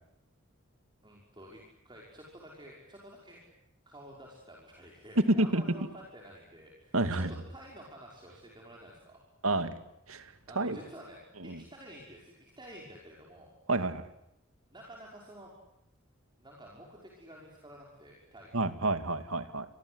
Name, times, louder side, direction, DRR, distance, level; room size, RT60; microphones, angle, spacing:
voice 1, 1.0-3.4 3.9-9.2 10.5-13.5 14.7-15.5 16.4-18.6, right 1 dB, 20° right, -2 dB, 5.8 m, -51 dB
voice 2, 6.9-7.3 9.4-9.7 10.1-10.8 11.4-11.6 13.7-14.1 18.5-19.7, right 2 dB, 80° right, 10 dB, 2.3 m, -30 dB
29.0 x 24.0 x 8.1 m, 0.83 s
head